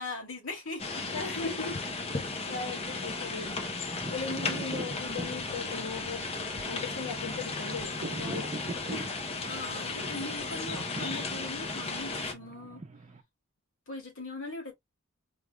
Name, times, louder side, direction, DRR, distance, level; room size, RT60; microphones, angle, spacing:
voice 1, 0.0-1.1 2.2-2.3 9.5-12.8 13.9-14.7, left 2 dB, 70° left, 2.6 m, -40 dB
sound 1, 0.8-12.3, left 3 dB, 30° left, 0.8 m, -35 dB
voice 2, 1.1-1.8 2.1-3.5 4.1-6.2 6.6-9.2, left 4 dB, 90° left, 1.2 m, -38 dB
sound 2, 3.1-13.2, right 2 dB, 35° right, 0.7 m, -43 dB
4.8 x 3.4 x 2.2 m
head